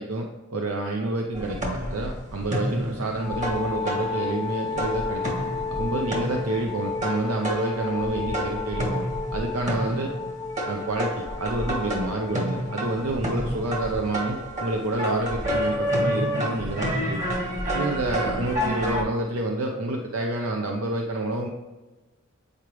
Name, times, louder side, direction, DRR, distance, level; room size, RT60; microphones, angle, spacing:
voice 1, 0.0-5.4 5.7-9.0 9.3-10.1 10.6-17.4 17.7-21.5, right 2 dB, 75° right, 2 dB, 0.7 m, -28 dB
sound 1, 1.3-4.5 4.8-19.0, equal, 35° right, 1.5 m, -30 dB
Wind instrument woodwind instrument, 3.2-13.2, left 5 dB, 25° left, 0.6 m, -33 dB
8.7 x 4.8 x 3.1 m, 1.2 s
head